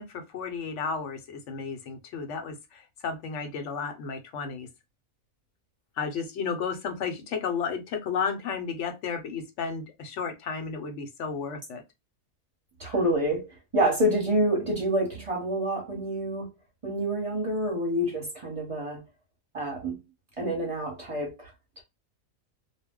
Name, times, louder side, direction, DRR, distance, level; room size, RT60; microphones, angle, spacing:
voice 1, 0.0-4.7 6.0-11.8 12.8-12.9, left 5 dB, 65° left, 0.9 m, -33 dB
voice 2, 12.8-16.5 16.8-19.0 19.5-20.0 20.4-21.8, right 1 dB, 25° right, 0.9 m, -28 dB
2.3 x 2.1 x 3.5 m
omnidirectional pair, 1.5 m